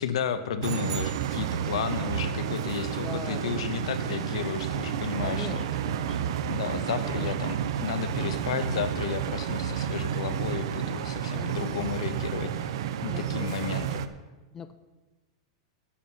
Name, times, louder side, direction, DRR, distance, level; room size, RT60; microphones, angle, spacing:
voice 1, 0.0-5.6 6.5-12.7 13.0-14.1, left 7 dB, 75° left, 11 dB, 0.9 m, -33 dB
sound 1, 0.6-2.1, right 8 dB, 25° right, 0.8 m, -41 dB
sound 2, 0.6-14.1, right 9 dB, 55° right, 0.6 m, -31 dB
voice 2, 2.9-3.7 4.3-4.4 5.2-6.4 7.0-7.5 11.3-11.8 13.0-13.5 14.5-14.7, left 6 dB, 15° left, 10 dB, 0.3 m, -42 dB
10.5 x 7.7 x 5.6 m, 1.2 s
supercardioid pair, 175°, 3 cm